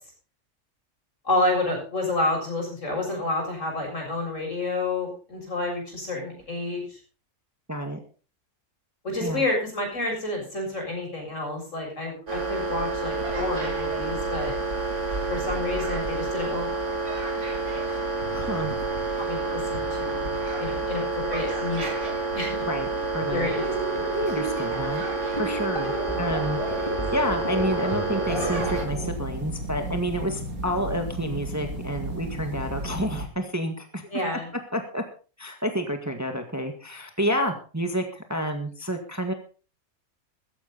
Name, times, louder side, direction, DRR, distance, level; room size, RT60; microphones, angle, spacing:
voice 1, 1.2-7.0 9.0-14.6 15.3-16.8 19.2-20.3 20.6-22.0 22.3-22.6 23.3-23.7 23.9-24.0 34.1-34.5, left 2 dB, 55° left, 0 dB, 7.5 m, -29 dB
voice 2, 7.7-8.0 9.2-9.4 18.3-18.7 22.7-22.9 23.1-23.5 24.1-25.0 25.4-34.0 34.7-35.0 35.4-39.3, equal, 10° right, 5 dB, 1.7 m, -29 dB
sound 1, 12.3-28.9, right 3 dB, 55° right, 3.1 m, -29 dB
sound 2, 23.4-29.1, right 1 dB, 20° left, 3.0 m, -32 dB
sound 3, 28.3-33.3, right 1 dB, 75° right, 3.1 m, -34 dB
15.5 x 14.0 x 4.1 m, 0.36 s
omnidirectional pair, 1.5 m